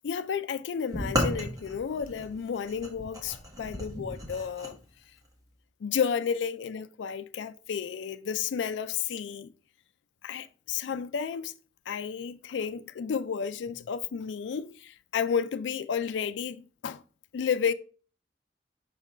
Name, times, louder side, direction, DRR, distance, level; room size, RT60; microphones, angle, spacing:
voice 1, 0.0-4.8 5.8-9.5 10.2-11.5 11.9-17.0 17.3-17.7, left 7 dB, 90° left, 0.4 m, -32 dB
sound 1, 0.9-4.7, equal, 20° right, 1.4 m, -33 dB
6.3 x 3.7 x 4.3 m
head